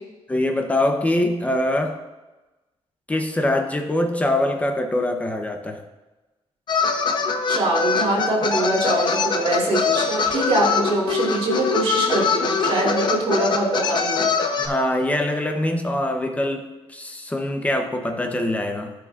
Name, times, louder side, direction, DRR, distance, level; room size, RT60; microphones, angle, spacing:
voice 1, 0.3-2.0 3.1-5.8 14.6-18.9, left 1 dB, 15° left, 5 dB, 0.6 m, -23 dB
sound 1, 6.7-14.7, left 5 dB, 45° left, 0.8 m, -23 dB
voice 2, 7.5-14.2, right 2 dB, 60° right, -5 dB, 2.8 m, -23 dB
14.5 x 5.9 x 2.4 m, 1.1 s
wide cardioid pair, 170°, 11 cm